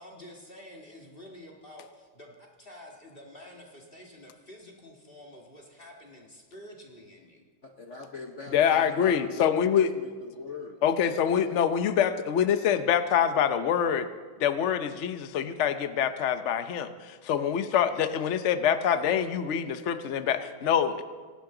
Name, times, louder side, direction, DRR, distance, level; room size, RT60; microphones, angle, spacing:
voice 1, 0.0-7.4, left 1 dB, 25° left, 0 dB, 1.9 m, -49 dB
voice 2, 7.6-11.6, left 3 dB, 50° left, 4 dB, 1.0 m, -42 dB
voice 3, 8.5-9.9 10.8-14.1 14.4-21.0, left 8 dB, 70° left, 10 dB, 0.6 m, -25 dB
25.5 x 12.0 x 3.9 m, 1.5 s
omnidirectional pair, 2.3 m